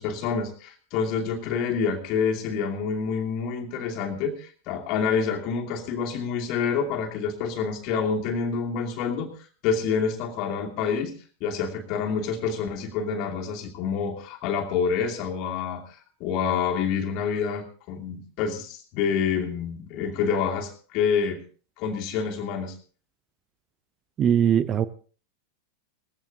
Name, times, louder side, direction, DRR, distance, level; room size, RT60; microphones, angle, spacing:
voice 1, 0.0-9.3 9.6-11.1 11.4-21.4 21.8-22.7, left 6 dB, 40° left, 2.6 m, -27 dB
voice 2, 24.2-24.9, right 9 dB, 30° right, 0.7 m, -20 dB
20.5 x 16.0 x 2.7 m
figure-of-eight pair, 90°, 0 cm